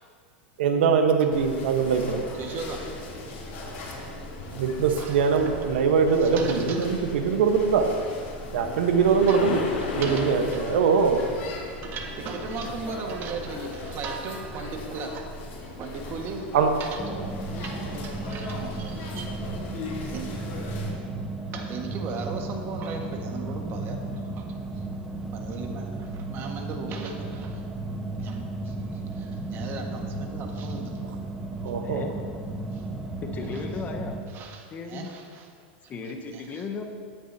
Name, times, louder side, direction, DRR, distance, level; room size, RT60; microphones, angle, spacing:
voice 1, 0.6-2.3 4.5-7.9 8.5-9.6 10.0-11.2 16.5-16.7 31.6-32.1, right 5 dB, 80° right, 5 dB, 1.2 m, -22 dB
sound 1, 1.3-20.9, left 2 dB, 45° left, 3.1 m, -39 dB
voice 2, 2.3-2.8 4.4-4.6 4.9-5.5 6.1-7.1 9.3-9.4 9.8-10.7 11.8-15.5 15.8-16.5 16.8-17.0 17.6-17.8 18.0-19.3 20.1-20.3 21.5-24.5 24.7-24.8 25.3-27.6 28.2-30.9 32.7-32.8 33.5-33.6 34.3-35.5 35.8-35.9 36.3-36.4, right 4 dB, 40° right, 3 dB, 1.7 m, -37 dB
sound 2, 7.8-13.0 16.9-17.0 17.7-17.8, left 3 dB, 90° left, 2.6 m, -35 dB
sound 3, 17.0-34.2, right 2 dB, 5° right, 1.2 m, -34 dB
voice 3, 31.8-32.1 33.2-34.2 34.7-35.1 35.9-36.8, left 4 dB, 30° left, 4 dB, 1.2 m, -35 dB
17.0 x 10.0 x 2.9 m, 2.1 s
supercardioid pair, 125°, 6 cm